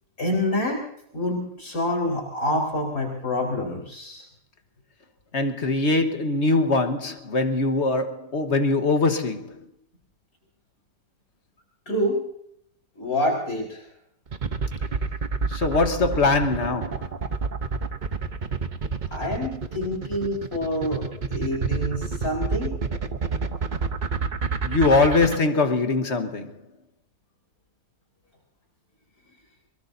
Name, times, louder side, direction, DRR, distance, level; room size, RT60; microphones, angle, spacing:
voice 1, 0.2-0.8 1.1-4.3 11.9-12.2 13.0-13.8 19.1-22.7, left 1 dB, 75° left, 4.8 m, -27 dB
voice 2, 5.3-9.6 15.5-17.1 24.6-26.5, left 3 dB, 50° left, 1.6 m, -22 dB
sound 1, 14.3-25.4, right 5 dB, 40° right, 0.9 m, -28 dB
24.0 x 22.5 x 2.7 m
omnidirectional pair, 1.6 m